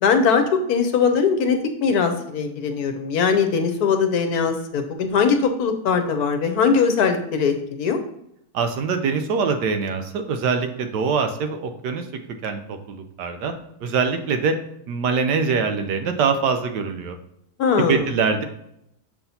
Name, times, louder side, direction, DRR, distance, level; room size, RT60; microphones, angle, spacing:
voice 1, 0.0-8.0 17.6-18.1, left 5 dB, 70° left, 7 dB, 1.2 m, -20 dB
voice 2, 8.5-12.0 12.4-13.5 13.8-14.5 14.9-17.2 17.8-18.4, right 5 dB, 85° right, 7 dB, 1.3 m, -23 dB
6.8 x 5.8 x 2.7 m, 0.77 s
omnidirectional pair, 1.8 m